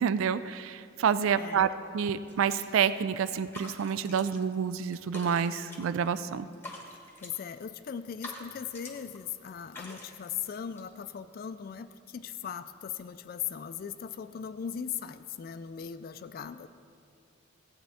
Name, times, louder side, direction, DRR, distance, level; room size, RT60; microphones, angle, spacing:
voice 1, 0.0-6.5, right 7 dB, 85° right, 14 dB, 0.3 m, -28 dB
voice 2, 1.4-1.7 7.2-16.7, left 8 dB, 45° left, 12 dB, 0.3 m, -39 dB
sound 1, 2.3-2.9 3.2-4.6 4.8-6.2 6.5-7.5 8.0-9.2 9.5-10.8, left 1 dB, 10° left, 1.2 m, -47 dB
14.5 x 8.7 x 3.5 m, 2.3 s
head